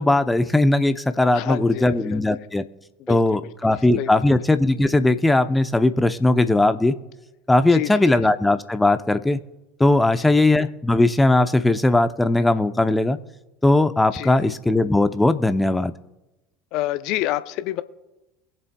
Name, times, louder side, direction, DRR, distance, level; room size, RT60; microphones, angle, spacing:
voice 1, 0.0-2.6 3.1-7.0 7.5-9.4 9.8-13.2 13.6-15.9, left 2 dB, 10° left, 10 dB, 0.8 m, -19 dB
voice 2, 1.3-2.2 3.1-3.4 4.0-4.2 7.7-8.2 14.1-14.5 16.7-17.8, left 15 dB, 60° left, 14 dB, 0.6 m, -28 dB
22.5 x 7.7 x 2.3 m, 1.0 s
hypercardioid pair, 70°, 0 cm